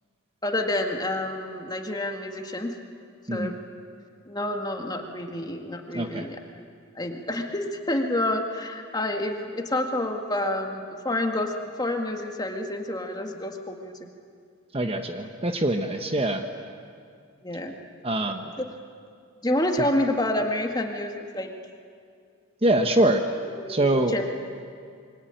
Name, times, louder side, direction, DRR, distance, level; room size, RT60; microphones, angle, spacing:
voice 1, 0.4-2.7 3.3-3.5 4.2-6.4 7.0-13.9 17.4-17.8 19.4-21.5 23.5-24.3, left 1 dB, 20° left, 3 dB, 2.0 m, -28 dB
voice 2, 5.9-6.3 14.7-16.4 18.0-18.5 22.6-23.2 23.7-24.1, right 1 dB, 25° right, 6 dB, 1.1 m, -24 dB
27.0 x 24.0 x 9.0 m, 2.3 s
head